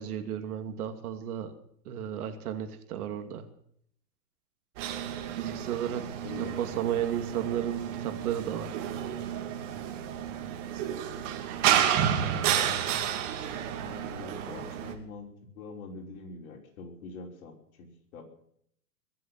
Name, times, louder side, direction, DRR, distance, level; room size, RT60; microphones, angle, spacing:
voice 1, 0.0-1.5 1.8-3.5 5.4-6.1 6.6-8.7, right 10 dB, 65° right, 7 dB, 2.7 m, -33 dB
sound 1, 4.8-14.9, right 10 dB, 50° right, 2.8 m, -31 dB
voice 2, 6.2-6.5 12.1-12.7 13.7-17.9 18.1-18.2, left 3 dB, 60° left, 2 dB, 5.5 m, -44 dB
22.0 x 7.8 x 7.7 m, 0.67 s
hypercardioid pair, 140°, 47 cm